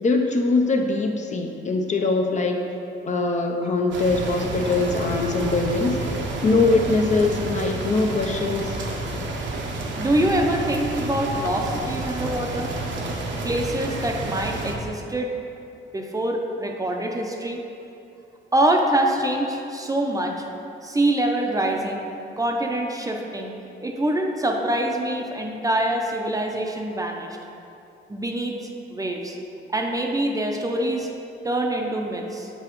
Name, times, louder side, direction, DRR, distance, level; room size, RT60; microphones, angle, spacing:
voice 1, 0.0-2.6 3.0-6.0 6.4-8.8, left 3 dB, 35° left, 2 dB, 0.5 m, -22 dB
sound 1, 3.9-14.8, right 2 dB, 70° right, 0.8 m, -30 dB
voice 2, 10.0-12.7 13.4-15.3 15.9-17.6 18.5-20.4 20.8-22.1 22.4-27.4 28.1-28.6 28.9-29.4 29.7-31.1 31.4-32.5, right 1 dB, 15° right, 2 dB, 0.6 m, -25 dB
6.9 x 4.7 x 3.0 m, 2.7 s
cardioid pair, 90°, 20 cm